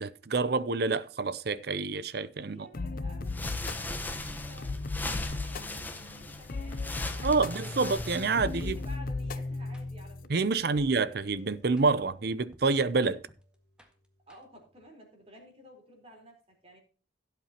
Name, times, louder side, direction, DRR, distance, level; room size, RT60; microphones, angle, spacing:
voice 1, 0.0-2.7 7.2-8.8 10.3-13.2, right 4 dB, 60° right, 0.6 m, -28 dB
voice 2, 2.4-7.8 8.3-11.1 14.3-16.8, equal, 35° right, 4.1 m, -53 dB
sound 1, 2.7-10.3, left 3 dB, 50° left, 0.6 m, -36 dB
sound 2, 3.3-9.0, left 2 dB, 10° left, 1.1 m, -39 dB
sound 3, 6.7-14.8, equal, 5° right, 1.7 m, -54 dB
16.5 x 8.0 x 2.9 m
head